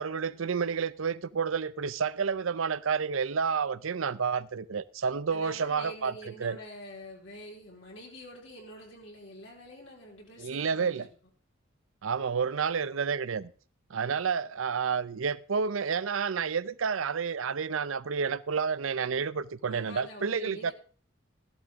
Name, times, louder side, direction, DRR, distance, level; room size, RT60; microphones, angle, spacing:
voice 1, 0.0-6.6 10.4-11.1 12.0-13.5 13.9-20.7, right 6 dB, 80° right, 0.6 m, -30 dB
voice 2, 5.3-11.1 19.7-20.7, left 1 dB, 65° left, 4.3 m, -46 dB
14.5 x 11.5 x 3.6 m
head